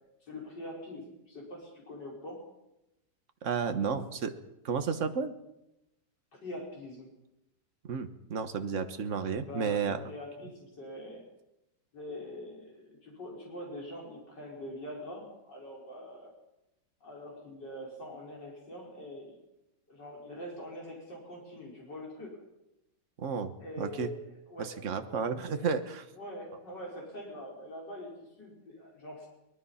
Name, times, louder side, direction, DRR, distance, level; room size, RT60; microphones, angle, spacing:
voice 1, 0.2-2.4 6.3-7.1 9.4-11.2 11.9-16.3 17.0-19.3 19.9-22.3 23.6-25.7 26.1-29.3, left 1 dB, 75° left, -3 dB, 5.9 m, -44 dB
voice 2, 3.4-4.3 4.6-5.3 7.8-10.0 23.2-23.5 23.8-24.1 24.6-26.0, right 6 dB, 45° right, 8 dB, 1.5 m, -32 dB
23.5 x 20.0 x 5.7 m, 0.89 s
omnidirectional pair, 1.9 m